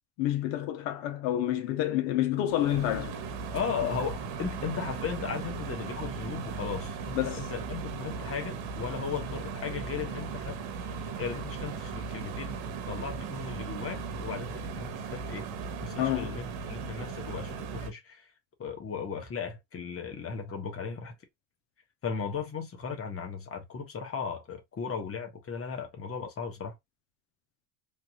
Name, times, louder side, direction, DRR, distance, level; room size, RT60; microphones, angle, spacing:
voice 1, 0.2-3.2 7.1-7.4 16.0-16.4, left 13 dB, 75° left, 0.8 m, -28 dB
sound 1, 2.5-17.9, right 5 dB, 75° right, 1.0 m, -37 dB
voice 2, 3.5-10.6 10.9-12.6 12.8-15.5 15.8-18.2 18.6-21.1 22.0-26.7, left 6 dB, 30° left, 1.2 m, -36 dB
3.4 x 2.4 x 2.9 m
cardioid pair, 105°, 45 cm